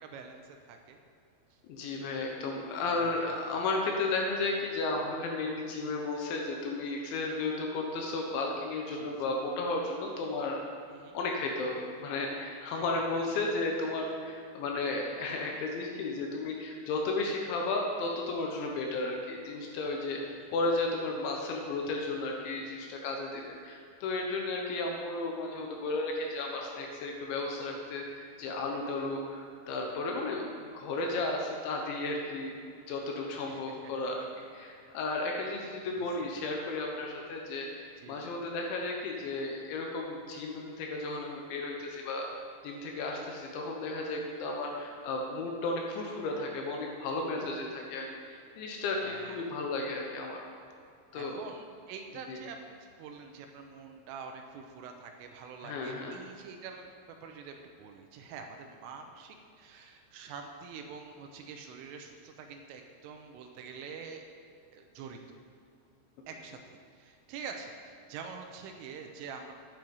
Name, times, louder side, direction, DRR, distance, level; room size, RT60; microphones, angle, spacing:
voice 1, 0.0-1.0 1.5-1.6 3.0-3.4 8.9-9.2 10.9-11.2 12.7-12.8 20.3-20.5 33.5-33.8 36.2-36.4 38.0-38.4 44.7-44.8 49.0-49.5 51.1-64.2 64.7-65.2 66.3-69.5, right 5 dB, 85° right, 4 dB, 3.3 m, -46 dB
voice 2, 1.7-10.6 11.1-20.2 20.5-32.6 32.9-42.3 42.6-50.4 51.1-51.4 52.3-52.4 55.6-56.1, left 2 dB, 75° left, 1 dB, 3.1 m, -34 dB
10.5 x 10.0 x 5.3 m, 2.4 s
omnidirectional pair, 5.8 m